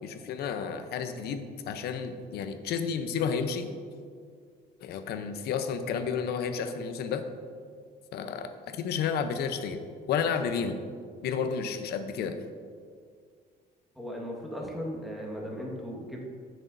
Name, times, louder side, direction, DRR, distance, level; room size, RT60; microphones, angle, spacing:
voice 1, 0.0-3.7 4.8-7.3 8.1-9.8 10.1-10.8 11.2-12.4, left 6 dB, 70° left, 8 dB, 0.7 m, -31 dB
voice 2, 14.0-16.3, equal, ahead, -2 dB, 1.6 m, -37 dB
13.5 x 6.2 x 2.6 m, 2.1 s
cardioid pair, 110°, 17 cm